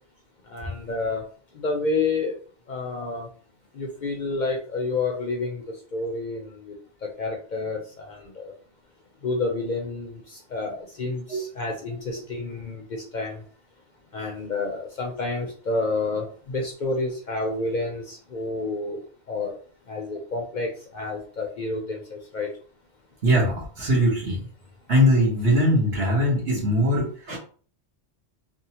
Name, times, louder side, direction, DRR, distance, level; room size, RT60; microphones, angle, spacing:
voice 1, 0.5-1.2 1.5-2.3 2.7-3.3 3.7-5.6 5.9-6.8 7.2-8.5 9.2-13.4 14.1-19.0 19.3-19.6 19.9-22.5, left 3 dB, 50° left, 0 dB, 0.6 m, -29 dB
voice 2, 23.2-24.4 24.9-27.4, equal, 60° right, -3 dB, 1.3 m, -21 dB
3.4 x 2.0 x 2.8 m, 0.42 s
omnidirectional pair, 1.2 m